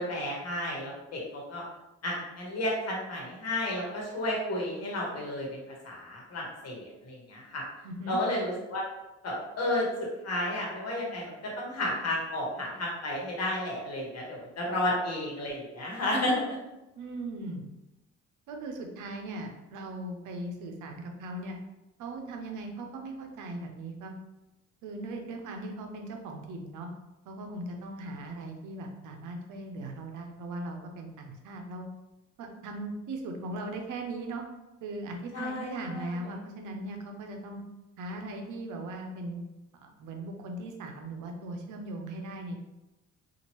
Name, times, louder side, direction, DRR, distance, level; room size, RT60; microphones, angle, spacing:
voice 1, 0.0-1.6 2.0-7.6 8.1-8.8 9.2-16.4 35.3-36.1, left 1 dB, 55° left, -3 dB, 1.2 m, -32 dB
voice 2, 7.8-8.2 17.0-17.6 18.5-21.6 22.0-24.1 24.8-26.9 27.3-31.8 32.4-34.5 34.8-37.6 38.0-39.4 39.8-42.6, right 2 dB, 80° right, 3 dB, 0.6 m, -39 dB
2.8 x 2.5 x 3.0 m, 0.97 s
cardioid pair, 90°, 30 cm